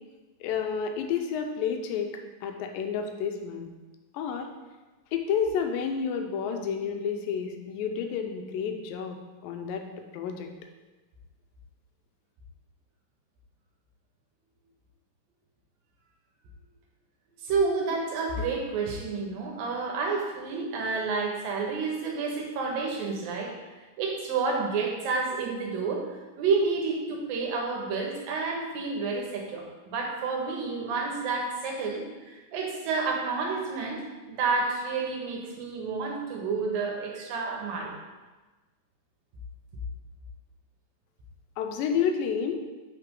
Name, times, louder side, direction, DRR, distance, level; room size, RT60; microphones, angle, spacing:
voice 1, 0.4-2.1 2.4-3.7 4.1-4.5 5.1-9.2 9.4-9.8 10.1-10.5 41.6-42.6, left 7 dB, 90° left, 5 dB, 2.4 m, -30 dB
voice 2, 17.4-23.5 24.0-26.0 26.4-34.0 34.3-37.9, right 4 dB, 90° right, 0 dB, 2.9 m, -30 dB
6.7 x 5.6 x 3.7 m, 1.2 s
omnidirectional pair, 3.9 m